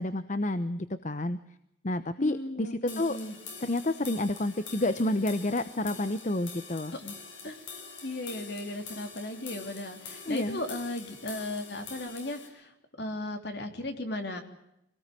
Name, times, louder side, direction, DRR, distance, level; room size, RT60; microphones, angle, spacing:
voice 1, 0.0-1.4 1.8-3.2 3.6-6.9 10.3-10.6, left 1 dB, 40° left, 12 dB, 0.9 m, -29 dB
voice 2, 2.2-3.4 7.0-7.2 7.4-7.5 8.0-12.7 13.0-14.4, left 1 dB, 60° left, 5 dB, 3.3 m, -36 dB
sound 1, 2.9-12.5, left 5 dB, 90° left, 6.5 m, -45 dB
25.5 x 18.5 x 7.7 m, 0.82 s
head